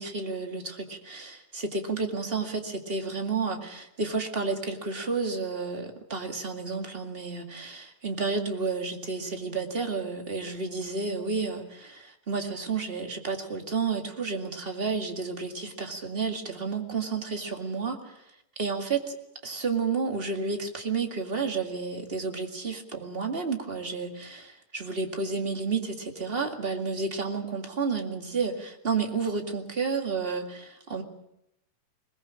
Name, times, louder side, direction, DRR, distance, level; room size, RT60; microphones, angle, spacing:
voice 1, 0.0-18.1 18.6-19.0 19.4-31.0, right 4 dB, 20° right, 3 dB, 1.7 m, -31 dB
21.5 x 20.5 x 7.4 m, 0.82 s
omnidirectional pair, 3.9 m